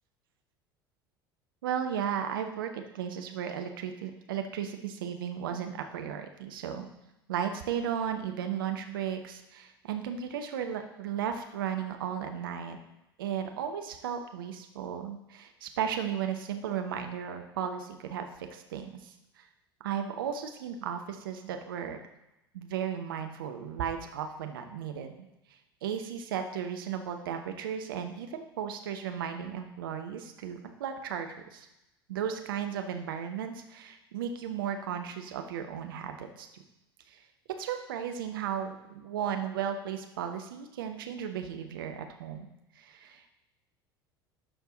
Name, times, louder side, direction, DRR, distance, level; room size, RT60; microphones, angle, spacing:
voice 1, 1.6-6.9 7.3-12.8 13.2-19.4 19.8-22.0 22.5-25.2 25.8-31.7 32.1-36.6 37.1-37.2 37.6-42.5 42.8-43.3, right 8 dB, 65° right, 6 dB, 0.9 m, -35 dB
12.0 x 4.6 x 3.9 m, 0.91 s
figure-of-eight pair, 70°, 12 cm